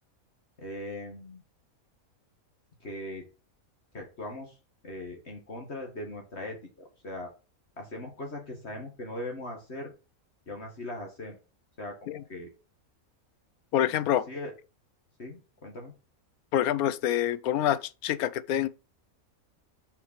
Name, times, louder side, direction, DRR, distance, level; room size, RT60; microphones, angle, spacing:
voice 1, 0.6-1.4 2.8-3.3 3.9-4.6 4.8-7.3 7.8-9.9 10.5-11.4 11.8-12.5 14.3-14.5 15.2-15.9, left 1 dB, 50° left, 2.0 m, -39 dB
voice 2, 13.7-14.3 16.5-18.7, left 11 dB, 85° left, 1.1 m, -26 dB
6.8 x 4.6 x 6.5 m
omnidirectional pair, 1.5 m